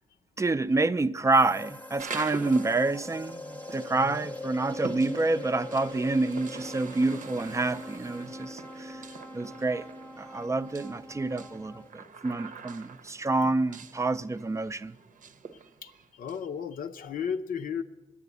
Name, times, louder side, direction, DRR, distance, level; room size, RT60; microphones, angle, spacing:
voice 1, 0.4-9.0 9.3-9.9 10.2-14.9, right 2 dB, 20° right, 0.4 m, -28 dB
sound 1, 1.3-11.9, left 2 dB, 10° left, 0.8 m, -42 dB
sound 2, 2.0-16.4, right 5 dB, 65° right, 0.7 m, -45 dB
voice 2, 3.9-4.2 6.8-6.9 15.8-17.8, left 7 dB, 75° left, 0.6 m, -35 dB
9.8 x 8.3 x 8.2 m
cardioid pair, 75°, 15 cm